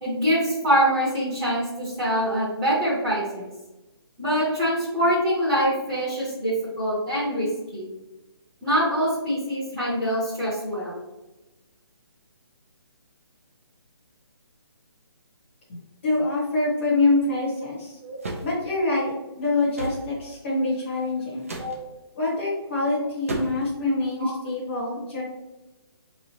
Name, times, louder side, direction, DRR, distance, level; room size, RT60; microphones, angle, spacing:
voice 1, 0.0-3.5 4.2-7.5 7.7-7.9 8.6-11.0 18.0-18.2 21.6-21.8 24.2-24.3, equal, 10° right, -12 dB, 0.9 m, -24 dB
voice 2, 16.0-18.0 18.4-21.5 22.1-25.2, left 2 dB, 25° left, -7 dB, 1.0 m, -25 dB
sound 1, 18.2-18.5 19.7-20.0 21.4-21.8 23.3-23.7, right 2 dB, 35° right, 0.5 m, -32 dB
4.8 x 3.0 x 2.7 m, 1.0 s
hypercardioid pair, 180°, 14 cm